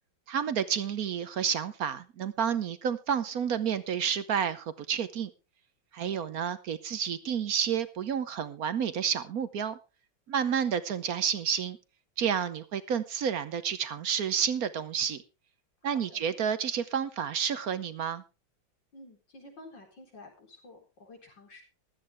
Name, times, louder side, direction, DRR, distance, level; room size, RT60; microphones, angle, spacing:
voice 1, 0.3-5.3 5.9-9.8 10.3-11.8 12.2-15.2 15.8-18.2, right 8 dB, 60° right, 13 dB, 1.1 m, -30 dB
voice 2, 18.9-21.6, left 2 dB, 70° left, 1 dB, 4.9 m, -51 dB
15.5 x 12.5 x 3.4 m, 0.29 s
omnidirectional pair, 2.1 m